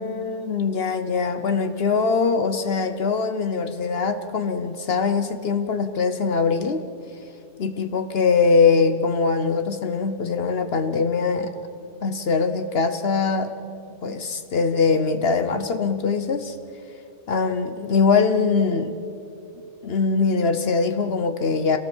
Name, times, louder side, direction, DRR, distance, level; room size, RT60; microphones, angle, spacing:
voice 1, 0.0-6.8 7.6-11.5 12.0-13.5 14.0-16.5 17.3-19.0 19.8-21.8, left 4 dB, 65° left, 9 dB, 1.1 m, -22 dB
26.5 x 18.0 x 7.3 m, 2.7 s
omnidirectional pair, 1.1 m